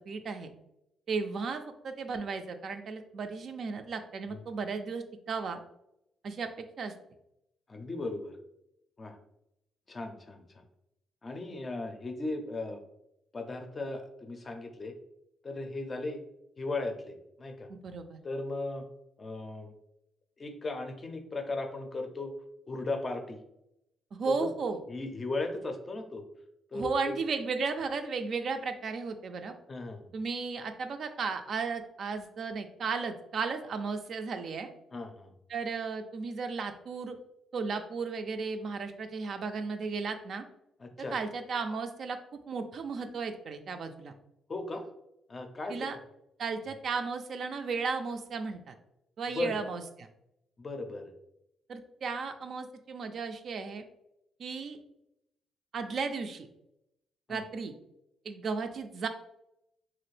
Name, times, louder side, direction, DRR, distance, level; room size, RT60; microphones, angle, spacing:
voice 1, 0.1-0.5 1.1-5.6 6.2-6.5 6.8-6.9 17.7-18.2 24.1-24.8 26.7-29.5 30.1-34.7 35.5-37.2 37.5-40.4 41.1-42.2 42.5-44.1 45.7-46.0 46.4-48.7 49.2-50.1 51.7-53.8 54.4-54.8 55.7-56.5 57.3-57.7 58.2-59.1, right 4 dB, 55° right, 7 dB, 0.3 m, -35 dB
voice 2, 7.7-8.3 9.0-9.2 9.9-10.6 11.2-12.8 13.3-14.9 15.4-16.2 16.6-17.7 18.2-18.9 19.2-19.7 20.4-22.3 22.7-23.4 24.3-24.5 24.9-26.2 26.7-27.2 29.7-30.1 34.9-35.3 40.8-41.2 44.5-44.9 45.3-46.0 49.3-49.6 50.6-51.1 57.3-57.4, left 2 dB, 35° left, 5 dB, 0.5 m, -37 dB
2.9 x 2.4 x 3.2 m, 0.82 s
cardioid pair, 90°, 0 cm